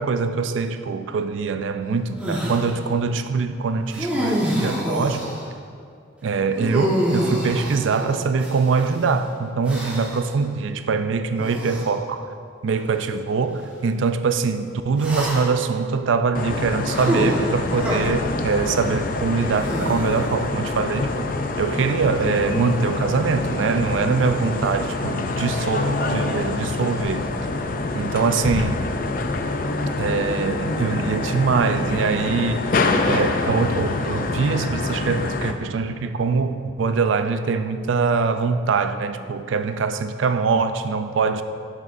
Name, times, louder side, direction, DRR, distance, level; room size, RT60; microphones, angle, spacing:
voice 1, 0.0-5.3 6.2-12.3 12.6-21.3 21.6-27.3 27.9-29.0 30.0-32.7 33.1-41.4, right 4 dB, 85° right, 0.4 m, -23 dB
sound 1, 2.2-2.7 3.9-5.4 6.6-8.9 9.6-10.3 11.4-11.9 12.7-12.9 15.0-15.7 16.9-18.0 19.5-20.4, equal, 5° right, 1.2 m, -26 dB
sound 2, 16.3-35.5, left 3 dB, 45° left, 0.4 m, -26 dB
10.5 x 6.4 x 2.6 m
head